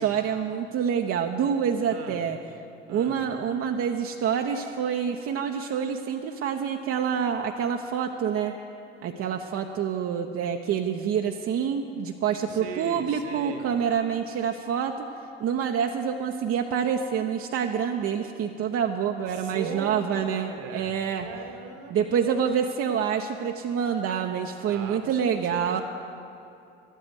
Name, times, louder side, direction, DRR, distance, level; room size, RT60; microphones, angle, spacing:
voice 1, 0.0-2.4 2.9-8.5 9.0-15.1 15.4-21.3 21.9-25.8, right 7 dB, 45° right, 3 dB, 0.8 m, -27 dB
voice 2, 1.8-2.2 2.9-3.2 12.5-13.7 19.3-22.7 24.6-25.8, right 5 dB, 65° right, 6 dB, 1.5 m, -39 dB
12.5 x 9.1 x 8.0 m, 2.7 s
figure-of-eight pair, 55°, 31 cm